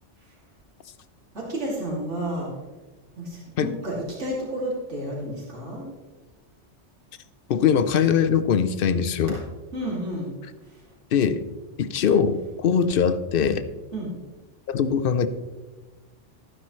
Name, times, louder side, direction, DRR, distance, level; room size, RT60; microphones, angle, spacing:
voice 1, 1.3-2.5 3.2-5.8 9.3-9.4 9.7-10.3 10.6-10.8 13.9-14.1, right 1 dB, 70° right, -4 dB, 2.9 m, -31 dB
voice 2, 7.5-9.4 11.1-11.4 11.8-13.6 14.7-15.3, left 7 dB, 55° left, 12 dB, 0.7 m, -21 dB
13.0 x 9.8 x 3.2 m, 1.2 s
omnidirectional pair, 1.2 m